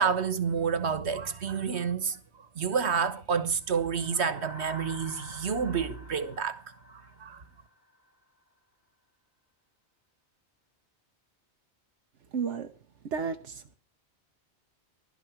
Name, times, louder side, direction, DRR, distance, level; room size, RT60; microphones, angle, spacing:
voice 1, 0.0-2.2 2.5-6.6 7.2-7.4, right 6 dB, 70° right, 1.6 m, -29 dB
sound 1, 3.6-8.1, left 1 dB, 30° left, 2.7 m, -48 dB
voice 2, 12.3-12.7 13.0-13.8, right 6 dB, 85° right, 1.2 m, -32 dB
16.0 x 12.5 x 4.5 m
omnidirectional pair, 1.2 m